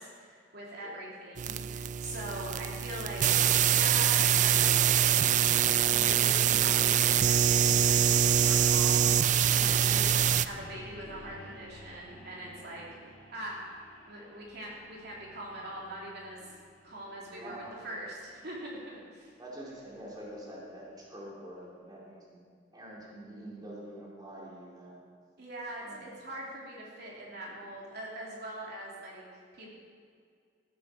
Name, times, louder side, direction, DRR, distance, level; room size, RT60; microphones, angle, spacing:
voice 1, 0.0-5.3 5.9-12.8 13.3-13.6 14.1-16.6 16.8-19.3 25.4-29.2 29.5-29.7, right 1 dB, 60° right, -4 dB, 3.0 m, -42 dB
sound 1, 1.4-10.5, right 9 dB, 45° right, 0.4 m, -24 dB
sound 2, 9.3-21.2, equal, 10° left, 3.2 m, -52 dB
voice 2, 17.3-17.7 19.4-22.4 22.7-25.0 25.8-26.0, right 1 dB, 20° right, -5 dB, 2.7 m, -46 dB
14.5 x 8.4 x 6.2 m, 2.2 s
head